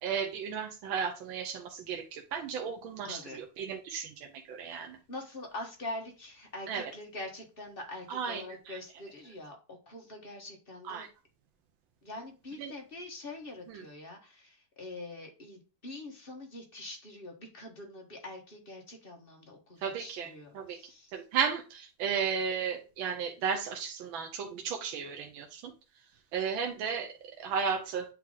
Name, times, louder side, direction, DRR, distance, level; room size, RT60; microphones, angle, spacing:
voice 1, 0.0-5.0 6.7-6.9 8.1-8.8 10.9-11.1 12.6-12.7 13.7-13.8 19.8-20.8 21.1-25.7 26.3-28.0, right 6 dB, 80° right, 2 dB, 1.5 m, -34 dB
voice 2, 3.0-3.4 5.1-11.1 12.0-21.1, left 2 dB, 30° left, 1 dB, 1.2 m, -44 dB
8.5 x 3.0 x 3.8 m, 0.34 s
omnidirectional pair, 2.2 m